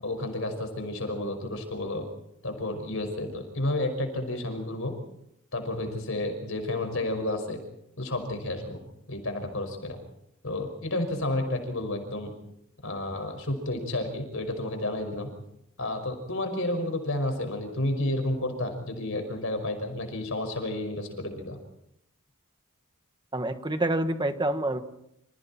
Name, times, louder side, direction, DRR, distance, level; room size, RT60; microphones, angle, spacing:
voice 1, 0.0-2.0 2.4-4.9 5.5-7.6 8.0-8.8 9.1-10.0 10.4-12.3 12.8-15.3 15.8-21.6, left 1 dB, 60° left, 6 dB, 5.6 m, -31 dB
voice 2, 23.3-24.8, right 1 dB, 20° right, 8 dB, 1.6 m, -27 dB
30.0 x 27.5 x 4.4 m, 0.77 s
head